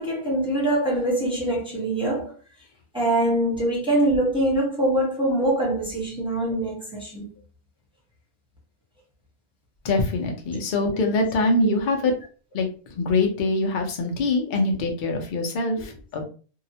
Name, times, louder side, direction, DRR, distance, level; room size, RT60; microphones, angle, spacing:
voice 1, 0.0-2.3 2.9-7.3 15.7-15.9, right 1 dB, 5° right, 0.7 m, -24 dB
voice 2, 9.8-12.1 12.5-12.7 13.0-16.2, left 2 dB, 55° left, 0.5 m, -23 dB
2.8 x 2.0 x 2.7 m
omnidirectional pair, 1.6 m